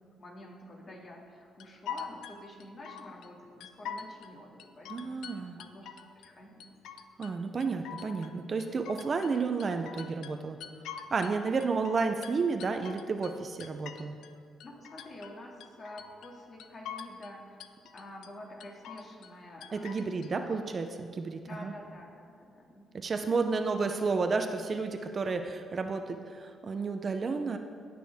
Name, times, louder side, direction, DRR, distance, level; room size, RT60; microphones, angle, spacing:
voice 1, 0.2-5.9 6.2-6.7 14.6-17.6 17.9-20.6 21.4-22.9, left 1 dB, 45° left, -1 dB, 2.2 m, -48 dB
sound 1, 1.6-3.3 3.6-4.3 4.6-6.3 6.6-7.3 7.6-11.4 11.6-14.3 14.6-15.3 15.6-16.3 16.6-17.3 17.6-18.3 18.6-19.3 19.6-20.3, left 7 dB, 80° left, 0.5 m, -44 dB
voice 2, 4.9-5.6 7.2-10.6 11.1-14.2 19.7-21.7 22.9-27.6, right 4 dB, 40° right, 7 dB, 0.6 m, -31 dB
18.0 x 6.1 x 3.5 m, 2.2 s
cardioid pair, 90°, 0 cm